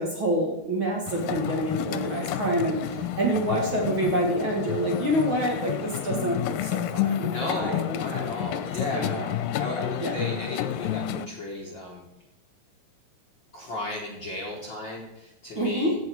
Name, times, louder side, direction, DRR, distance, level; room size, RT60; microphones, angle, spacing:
voice 1, 0.0-7.3 7.6-8.5 8.9-9.3 10.0-10.1 15.6-15.9, right 1 dB, 45° right, -1 dB, 2.0 m, -27 dB
sound 1, 1.1-11.3, left 11 dB, 85° left, 2.3 m, -30 dB
voice 2, 7.2-12.0 13.5-16.0, left 2 dB, 50° left, -2 dB, 1.5 m, -34 dB
16.5 x 6.3 x 4.5 m, 0.92 s
omnidirectional pair, 4.0 m